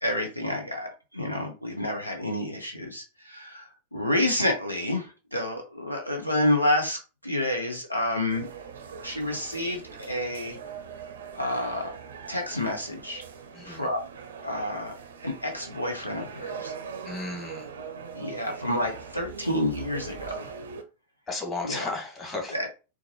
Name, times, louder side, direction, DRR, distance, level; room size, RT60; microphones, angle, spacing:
voice 1, 0.0-8.5 9.0-10.6 11.3-12.0 12.3-13.2 13.6-14.0 14.4-14.9 15.2-16.7 17.9-20.5 21.6-21.9 22.5-22.7, left 1 dB, 85° left, 2 dB, 0.7 m, -29 dB
sound 1, 8.3-20.8, right 6 dB, 65° right, 0.6 m, -41 dB
voice 2, 13.5-13.9 17.0-17.7 21.3-22.7, left 2 dB, 20° left, 1 dB, 1.3 m, -34 dB
4.5 x 2.2 x 2.8 m, 0.31 s
figure-of-eight pair, 90°, 0 cm